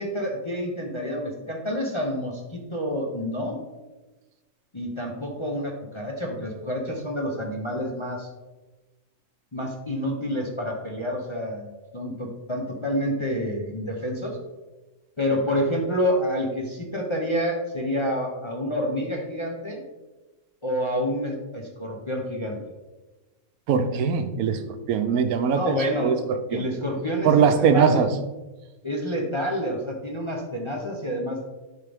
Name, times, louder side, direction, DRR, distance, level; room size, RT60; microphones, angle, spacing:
voice 1, 0.0-3.6 4.7-8.3 9.5-14.4 15.2-19.8 20.6-22.6 25.5-26.2 26.5-27.3 27.6-28.0 28.8-31.5, equal, 30° left, 0 dB, 0.6 m, -28 dB
voice 2, 23.7-24.6 24.9-26.2 26.5-26.6 27.2-28.1, right 6 dB, 80° right, 9 dB, 1.1 m, -21 dB
11.0 x 3.7 x 3.4 m, 1.1 s
omnidirectional pair, 1.5 m